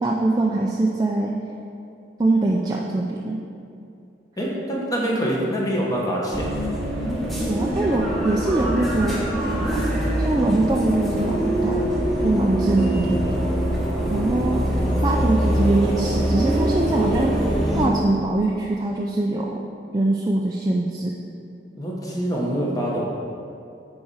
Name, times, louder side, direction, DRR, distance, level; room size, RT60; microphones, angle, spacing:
voice 1, 0.0-1.3 2.2-3.4 7.5-9.8 10.2-13.4 14.1-14.6 15.0-17.4 17.7-19.6 19.9-21.2, right 2 dB, 20° right, -2 dB, 0.4 m, -23 dB
voice 2, 4.4-6.6 21.7-23.0, equal, 20° left, -4 dB, 1.2 m, -25 dB
sound 1, 6.3-17.9, right 1 dB, ahead, 1.1 m, -23 dB
9.4 x 4.2 x 4.9 m, 2.5 s
head